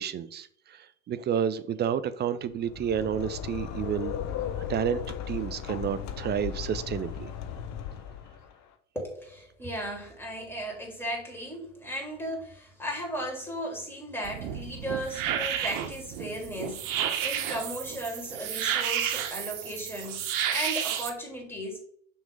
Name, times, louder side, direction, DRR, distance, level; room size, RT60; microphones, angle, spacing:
voice 1, 0.0-4.2 4.7-7.3, right 9 dB, 25° right, 15 dB, 0.5 m, -30 dB
sound 1, 2.5-8.5, left 9 dB, 45° left, 0.9 m, -36 dB
voice 2, 8.9-20.2 20.5-21.8, equal, 5° left, -1 dB, 3.0 m, -36 dB
sound 2, 14.2-21.1, right 9 dB, 55° right, 1.1 m, -31 dB
6.0 x 3.7 x 5.3 m, 0.63 s
hypercardioid pair, 70°, 39 cm